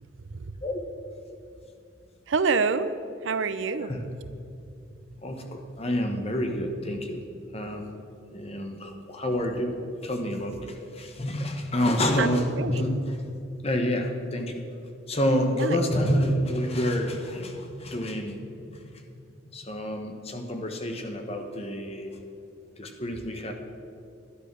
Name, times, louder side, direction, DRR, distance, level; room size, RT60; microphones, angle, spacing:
voice 1, 2.3-2.9 3.2-3.9 12.2-12.8 15.5-15.8, right 4 dB, 75° right, 13 dB, 0.6 m, -26 dB
voice 2, 5.2-7.2 7.5-7.9 8.3-13.2 13.6-14.6 15.1-18.4 18.9-19.0 19.5-22.1 22.8-23.5, left 1 dB, 30° left, 4 dB, 1.2 m, -28 dB
12.0 x 10.0 x 6.1 m, 2.6 s
head